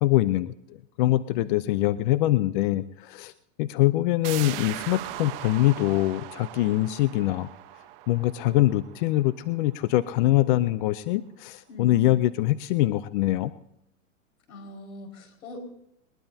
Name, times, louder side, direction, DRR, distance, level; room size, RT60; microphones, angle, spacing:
voice 1, 0.0-3.3 3.6-7.5 8.1-13.5, left 16 dB, 40° left, 15 dB, 0.5 m, -24 dB
sound 1, 4.2-9.7 10.1-10.2, right 15 dB, 45° right, 1.0 m, -39 dB
voice 2, 11.7-12.3 14.5-15.6, left 2 dB, 75° left, 4 dB, 5.3 m, -42 dB
21.0 x 21.0 x 2.8 m, 0.78 s
hypercardioid pair, 140°, 41 cm